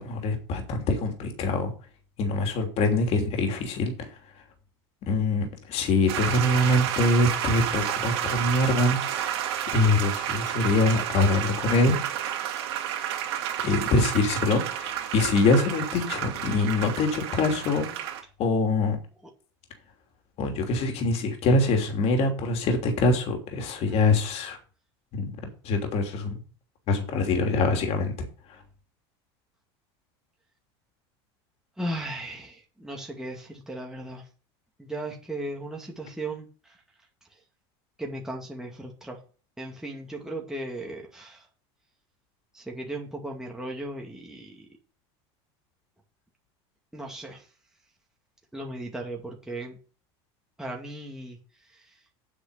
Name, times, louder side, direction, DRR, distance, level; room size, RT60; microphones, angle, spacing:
voice 1, 0.0-1.7 2.2-4.1 5.1-12.0 13.6-17.9 18.4-19.0 20.4-24.6 25.1-25.3 25.6-26.3 26.9-28.1, left 2 dB, 50° left, 4 dB, 3.0 m, -24 dB
sound 1, 6.1-18.2, right 11 dB, 80° right, 2.9 m, -31 dB
voice 2, 31.8-34.3 34.8-36.8 37.3-37.4 38.0-39.2 39.6-41.5 42.5-44.7 46.9-47.5 48.5-49.8 50.6-51.4 51.6-52.0, right 1 dB, 5° right, -1 dB, 2.2 m, -37 dB
8.2 x 6.0 x 6.8 m, 0.38 s
supercardioid pair, 110°, 14 cm